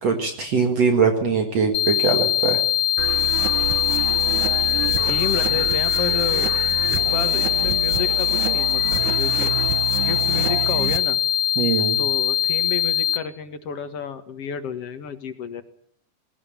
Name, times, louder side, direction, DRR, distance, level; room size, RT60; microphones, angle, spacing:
voice 1, 0.0-2.6 11.6-12.0, right 5 dB, 55° right, 4 dB, 2.9 m, -21 dB
sound 1, 1.7-13.2, left 11 dB, 85° left, 3.1 m, -22 dB
sound 2, 3.0-11.0, right 9 dB, 75° right, 2.6 m, -28 dB
voice 2, 5.1-6.5 6.9-9.5 10.0-11.2 12.0-15.6, left 6 dB, 55° left, 8 dB, 2.4 m, -31 dB
19.5 x 18.5 x 8.9 m, 0.64 s
omnidirectional pair, 3.8 m